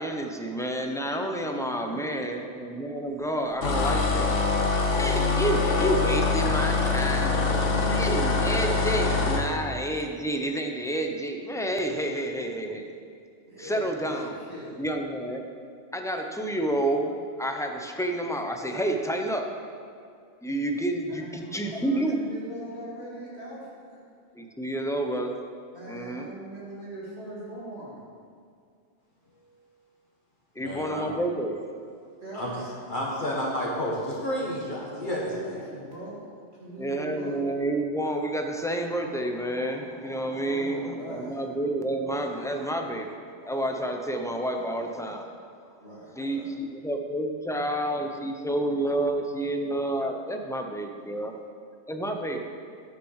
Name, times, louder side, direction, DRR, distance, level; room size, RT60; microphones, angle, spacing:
voice 1, 0.0-4.3 4.9-7.5 7.9-12.9 13.6-14.4 14.8-15.4 15.9-19.5 20.4-22.2 24.3-25.3 25.9-26.2 30.5-31.5 36.8-45.3 46.2-51.3 51.9-52.5, right 1 dB, 5° left, 3 dB, 0.6 m, -29 dB
voice 2, 1.5-2.1 13.5-14.9 20.1-20.3 21.1-24.0 25.7-27.9 29.2-29.7 32.2-32.7 34.9-37.4 40.4-41.4 45.8-46.5, right 1 dB, 65° right, -7 dB, 3.2 m, -41 dB
sound 1, 3.6-9.5, left 3 dB, 90° left, 1.4 m, -24 dB
voice 3, 7.1-8.3 8.5-8.6 30.6-31.1 32.3-35.6, equal, 45° left, -4 dB, 1.5 m, -32 dB
9.7 x 6.7 x 6.4 m, 2.3 s
omnidirectional pair, 1.2 m